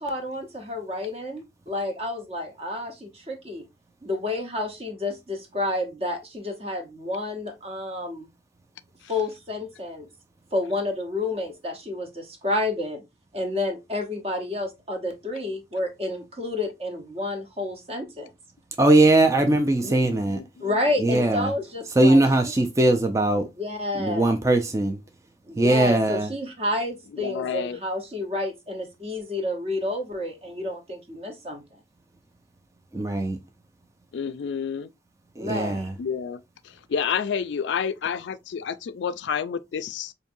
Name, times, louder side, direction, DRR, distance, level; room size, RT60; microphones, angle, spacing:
voice 1, 0.0-3.6 4.0-8.3 9.1-10.1 10.5-13.0 13.3-18.3 19.8-20.0 20.6-22.2 23.6-24.4 25.5-31.6 35.4-35.9, left 2 dB, 35° right, 1.0 m, -30 dB
voice 2, 18.8-20.4 21.0-21.5 22.0-23.5 24.0-25.0 25.6-26.3 32.9-33.4 35.4-35.9, right 2 dB, 15° right, 0.4 m, -20 dB
voice 3, 19.8-21.2 27.1-27.8 34.1-34.9 36.0-40.1, left 7 dB, 75° left, 0.4 m, -30 dB
5.2 x 2.6 x 2.6 m
head